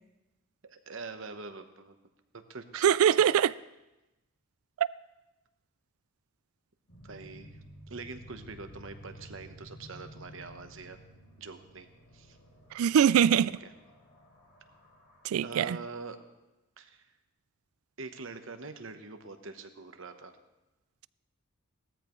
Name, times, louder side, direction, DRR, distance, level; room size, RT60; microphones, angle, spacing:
voice 1, 0.7-1.9 2.3-2.9 7.0-7.6 7.9-11.0 11.4-11.9 12.1-12.4 13.4-13.7 15.4-16.2 16.8-17.1 18.0-20.3, right 4 dB, 65° right, 1.0 m, -44 dB
voice 2, 2.8-3.5 4.8-4.9 12.7-13.6 15.2-15.8, right 9 dB, 90° right, 0.3 m, -23 dB
sound 1, 6.9-15.4, equal, 80° left, 2.8 m, -52 dB
18.0 x 13.5 x 3.1 m
head